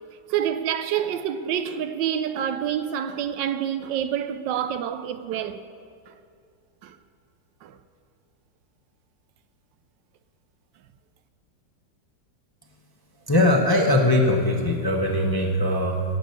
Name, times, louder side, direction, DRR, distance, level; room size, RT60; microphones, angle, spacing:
voice 1, 0.3-5.6 6.1-6.2 6.8-7.0 7.6-7.8, right 9 dB, 80° right, 1.4 m, -27 dB
voice 2, 13.3-16.0, left 1 dB, 20° left, 0.7 m, -21 dB
17.0 x 6.9 x 8.0 m
omnidirectional pair, 1.9 m